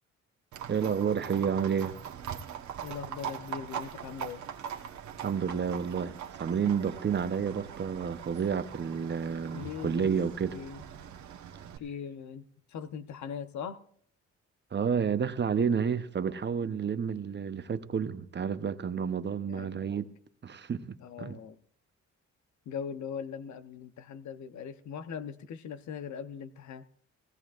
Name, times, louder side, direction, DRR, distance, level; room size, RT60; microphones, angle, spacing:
Livestock farm animals working animals, 0.5-11.8, right 8 dB, 70° right, 1.4 m, -42 dB
voice 1, 0.7-1.9 5.2-6.1 6.4-10.6 14.7-20.1 20.4-21.4, right 7 dB, 35° right, 0.9 m, -30 dB
voice 2, 2.8-4.5 9.5-10.1 10.5-10.8 11.8-13.8 19.5-19.9 21.0-21.6 22.7-26.9, left 7 dB, 70° left, 1.0 m, -40 dB
18.0 x 16.0 x 2.5 m
cardioid pair, 90°, 30 cm